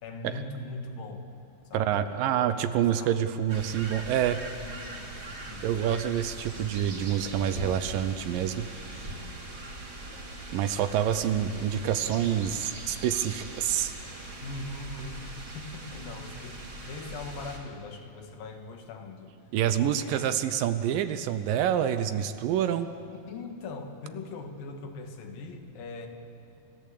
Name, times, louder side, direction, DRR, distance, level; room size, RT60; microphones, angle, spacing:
voice 1, 0.0-1.3 1.7-3.2 4.6-5.8 14.4-19.3 19.8-20.5 23.3-26.1, left 3 dB, 75° left, 5 dB, 3.4 m, -41 dB
voice 2, 1.7-4.4 5.6-8.7 9.0-9.1 10.5-13.9 19.5-22.9, right 10 dB, 75° right, 11 dB, 2.4 m, -27 dB
sound 1, 3.5-17.6, right 2 dB, 35° right, 3.4 m, -41 dB
30.0 x 14.5 x 8.5 m, 2.8 s
omnidirectional pair, 4.2 m